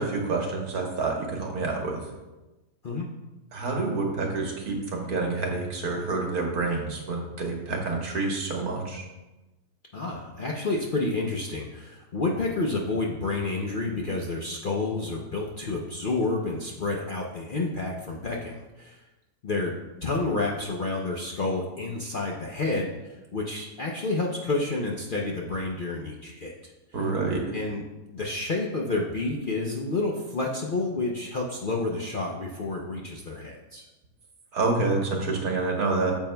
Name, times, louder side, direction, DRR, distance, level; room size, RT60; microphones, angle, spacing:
voice 1, 0.0-2.0 3.5-9.1 26.9-27.4 34.5-36.1, right 3 dB, 70° right, 0 dB, 1.8 m, -28 dB
voice 2, 9.9-19.0 19.4-19.7 20.0-26.7 27.5-33.9, left 3 dB, 55° left, -2 dB, 0.6 m, -29 dB
9.0 x 7.3 x 2.2 m, 1.1 s
omnidirectional pair, 1.7 m